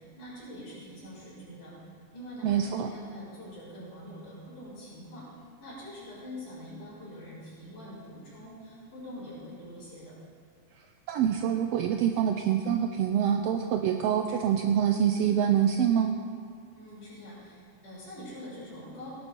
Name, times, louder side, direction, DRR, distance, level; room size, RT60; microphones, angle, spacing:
voice 1, 0.0-1.7 2.1-5.3 5.6-10.2 16.7-19.2, equal, 60° left, -11 dB, 5.7 m, -44 dB
voice 2, 2.4-2.9 11.1-16.1, right 9 dB, 80° right, 5 dB, 1.4 m, -25 dB
18.5 x 10.5 x 4.5 m, 2.1 s
omnidirectional pair, 3.4 m